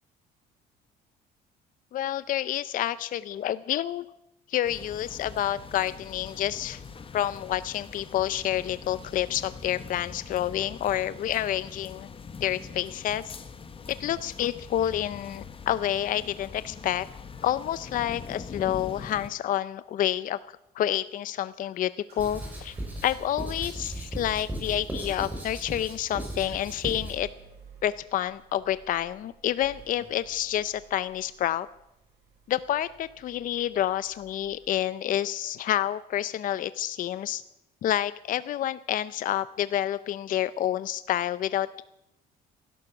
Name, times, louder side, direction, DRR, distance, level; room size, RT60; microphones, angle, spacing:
voice 1, 1.9-4.0 4.5-6.8 7.1-12.1 12.4-13.3 13.9-17.1 17.4-20.4 20.7-22.8 23.0-27.3 27.8-31.7 32.5-37.4 37.8-41.8, left 12 dB, 55° left, 16 dB, 0.6 m, -29 dB
sound 1, 4.6-19.3, left 5 dB, 30° left, 1.4 m, -43 dB
sound 2, 22.1-34.9, right 6 dB, 75° right, 5.8 m, -55 dB
Writing, 22.2-27.2, right 1 dB, 10° right, 6.2 m, -37 dB
16.5 x 11.5 x 7.2 m, 0.85 s
cardioid pair, 110°, 17 cm